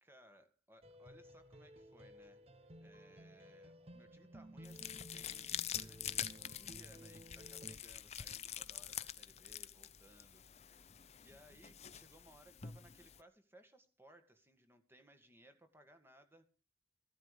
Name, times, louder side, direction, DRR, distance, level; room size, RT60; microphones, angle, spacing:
voice 1, 0.0-10.4 10.7-16.5, right 1 dB, 15° right, 7 dB, 1.9 m, -64 dB
sound 1, 0.8-7.8, right 1 dB, 35° right, 0.9 m, -56 dB
sound 2, 4.6-13.2, left 10 dB, 35° left, 0.6 m, -46 dB
15.0 x 12.5 x 5.1 m, 0.37 s
head